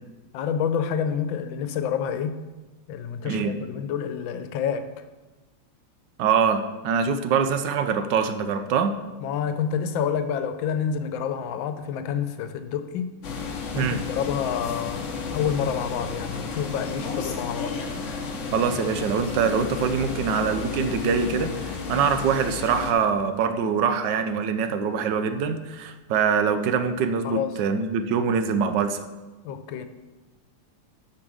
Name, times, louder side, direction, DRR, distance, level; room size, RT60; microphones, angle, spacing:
voice 1, 0.3-2.4 2.9-4.9 9.2-13.1 13.7-17.8 27.2-27.6 29.4-29.9, left 7 dB, 85° left, 1.4 m, -28 dB
voice 2, 3.2-3.6 6.2-8.9 13.8-14.0 18.5-29.0, right 6 dB, 75° right, 1.2 m, -24 dB
sound 1, 13.2-22.9, left 4 dB, 50° left, 1.0 m, -32 dB
8.6 x 5.2 x 6.2 m
omnidirectional pair, 2.1 m